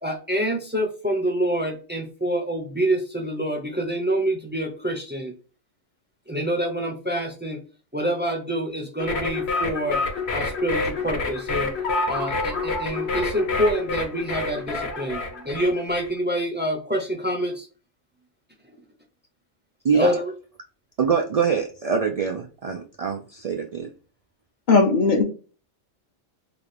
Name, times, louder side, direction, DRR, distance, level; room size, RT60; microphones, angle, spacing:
voice 1, 0.0-5.3 6.3-7.6 7.9-10.0 10.3-11.7 12.1-17.7 19.9-20.2, right 1 dB, 10° right, 1 dB, 0.5 m, -26 dB
sound 1, 9.0-16.1, left 3 dB, 65° left, 1.1 m, -28 dB
voice 2, 21.0-23.9, right 6 dB, 75° right, 2 dB, 0.3 m, -24 dB
voice 3, 24.7-25.2, left 3 dB, 50° left, 3 dB, 0.8 m, -17 dB
3.9 x 2.4 x 3.3 m, 0.36 s
omnidirectional pair, 1.2 m